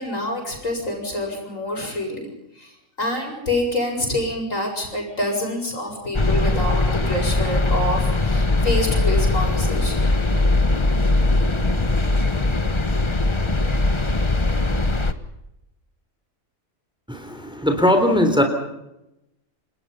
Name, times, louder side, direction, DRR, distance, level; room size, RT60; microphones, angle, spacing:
voice 1, 0.0-2.3 2.6-2.7 3.0-10.0, left 1 dB, 70° left, 1 dB, 8.1 m, -26 dB
sound 1, 6.1-15.1, left 2 dB, 20° left, 1.3 m, -20 dB
voice 2, 17.1-18.4, left 1 dB, 5° right, 5 dB, 3.6 m, -19 dB
29.0 x 20.0 x 5.7 m, 0.88 s
omnidirectional pair, 1.4 m